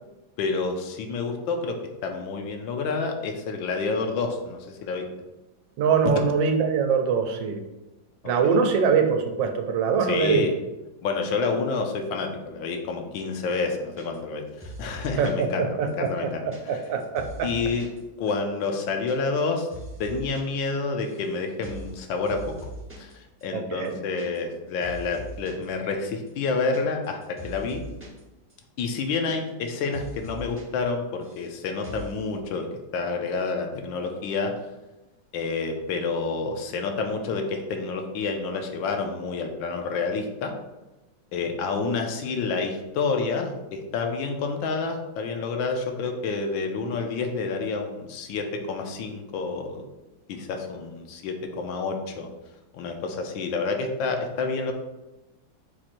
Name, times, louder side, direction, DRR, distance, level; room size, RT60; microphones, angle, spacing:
voice 1, 0.4-1.8 2.0-5.1 8.2-8.6 10.0-10.5 11.0-16.8 17.4-17.9 18.2-19.7 20.0-22.5 23.0-27.8 28.8-32.7 32.9-34.5 35.3-40.5 41.3-49.8 50.3-52.3 52.7-54.7, left 4 dB, 90° left, 4 dB, 1.4 m, -29 dB
voice 2, 5.8-7.6 8.2-10.5 15.2-16.1 16.4-17.5 23.5-24.0, right 6 dB, 80° right, 5 dB, 1.3 m, -23 dB
sound 1, 14.0-14.3 14.6-15.4 15.9-18.0 18.3-18.4 18.6-19.1 19.4-20.4 20.7-21.3 21.6-21.9 22.3-23.1 23.4-23.5 23.7-24.6 24.8-25.6 26.1-28.2 28.5-28.6 28.8-29.7 29.9-30.6 30.9-31.5 31.8-32.2, right 1 dB, 15° right, 0.5 m, -41 dB
4.5 x 4.2 x 2.5 m, 1.0 s
omnidirectional pair, 2.0 m